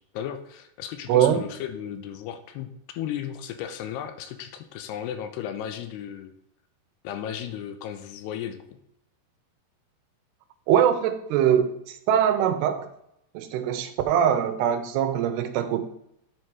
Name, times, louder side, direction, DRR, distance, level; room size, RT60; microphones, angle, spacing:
voice 1, 0.1-6.3 7.0-8.8, left 10 dB, 90° left, 9 dB, 2.8 m, -35 dB
voice 2, 1.1-1.4 10.7-12.9 13.3-15.8, right 9 dB, 80° right, 8 dB, 2.9 m, -22 dB
10.0 x 4.8 x 4.6 m, 0.76 s
omnidirectional pair, 4.7 m